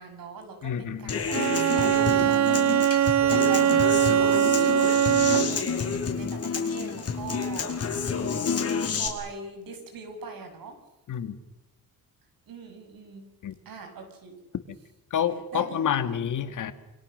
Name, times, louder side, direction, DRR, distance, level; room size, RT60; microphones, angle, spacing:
voice 1, 0.0-7.7 8.9-10.8 12.5-13.3 13.7-14.4 15.5-16.2, right 4 dB, 70° right, 5 dB, 7.2 m, -41 dB
voice 2, 0.6-1.2 11.1-11.4 13.4-13.5 15.1-16.7, left 8 dB, 60° left, 10 dB, 2.1 m, -28 dB
Human voice / Acoustic guitar, 1.1-9.1, left 5 dB, 45° left, 4.9 m, -29 dB
Bowed string instrument, 1.3-5.7, right 10 dB, 50° right, 1.0 m, -22 dB
28.5 x 26.0 x 6.7 m, 0.93 s
cardioid pair, 140°, 35 cm